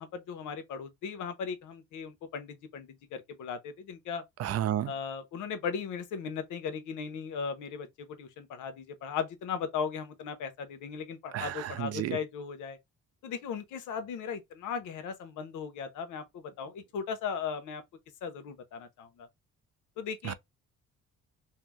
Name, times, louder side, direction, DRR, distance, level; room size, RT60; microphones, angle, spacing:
voice 1, 0.0-4.2 4.9-12.8 13.2-17.8 18.2-19.3 20.0-20.3, left 6 dB, 85° left, 0.8 m, -37 dB
voice 2, 4.4-4.9 11.3-12.2 20.2-20.3, right 11 dB, 55° right, 0.4 m, -31 dB
2.7 x 2.1 x 3.3 m
cardioid pair, 90°, 30 cm